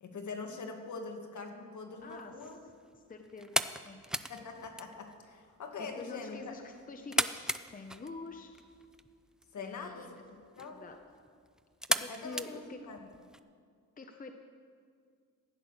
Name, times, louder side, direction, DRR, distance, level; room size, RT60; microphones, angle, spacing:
voice 1, 0.0-2.6 4.3-6.6 9.5-10.8 12.1-13.0, left 4 dB, 55° left, 4 dB, 2.0 m, -43 dB
voice 2, 2.0-2.6 3.0-4.0 5.8-8.5 9.6-10.2 10.5-11.0 12.0-12.8 14.0-14.3, left 3 dB, 25° left, 6 dB, 0.8 m, -47 dB
sound 1, 2.0-13.4, right 1 dB, ahead, 0.4 m, -39 dB
15.5 x 10.0 x 6.5 m, 2.1 s
cardioid pair, 105°, 35 cm